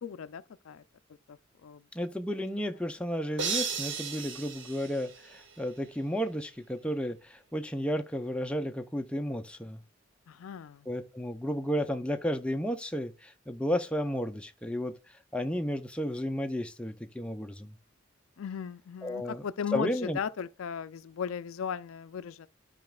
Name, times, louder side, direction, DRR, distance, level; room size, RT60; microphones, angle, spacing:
voice 1, 0.0-0.8 1.3-1.8 10.3-10.9 18.4-22.5, left 7 dB, 90° left, 0.4 m, -37 dB
voice 2, 1.9-9.8 10.9-17.8 19.0-19.4 19.7-20.2, equal, 5° left, 0.5 m, -33 dB
sound 1, 3.4-5.7, right 5 dB, 65° right, 1.2 m, -35 dB
12.5 x 5.0 x 2.3 m
head